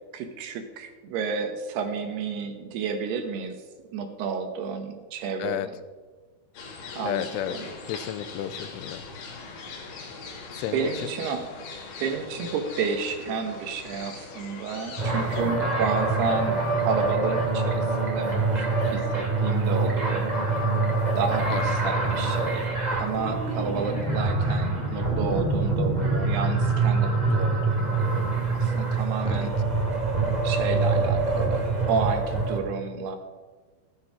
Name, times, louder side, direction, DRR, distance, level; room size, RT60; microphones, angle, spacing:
voice 1, 0.1-3.6 3.9-5.6 7.0-7.2 7.5-7.7 10.7-11.5 12.0-20.3 21.2-29.5 30.4-33.2, right 5 dB, 70° right, 6 dB, 2.8 m, -31 dB
sound 1, 6.5-15.4, left 4 dB, 70° left, 4.4 m, -41 dB
voice 2, 7.0-7.6 7.8-9.0 10.5-11.1 15.3-15.8 21.5-21.8 27.3-27.6 29.2-29.5, left 11 dB, 90° left, 12 dB, 3.2 m, -33 dB
sound 2, 15.0-32.6, right 3 dB, 10° right, 2.2 m, -25 dB
14.5 x 10.0 x 5.9 m, 1.4 s
omnidirectional pair, 5.4 m